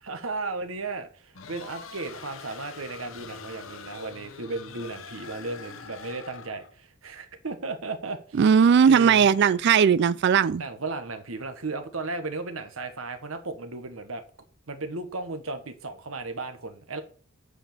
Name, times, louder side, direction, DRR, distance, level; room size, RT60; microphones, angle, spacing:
voice 1, 0.0-8.4 8.9-9.3 10.6-14.2 14.7-17.0, right 3 dB, 80° right, 1.4 m, -35 dB
sound 1, 1.3-6.7, left 5 dB, 75° left, 1.0 m, -44 dB
voice 2, 8.4-10.6, right 7 dB, 55° right, 0.3 m, -18 dB
8.8 x 5.0 x 6.7 m
head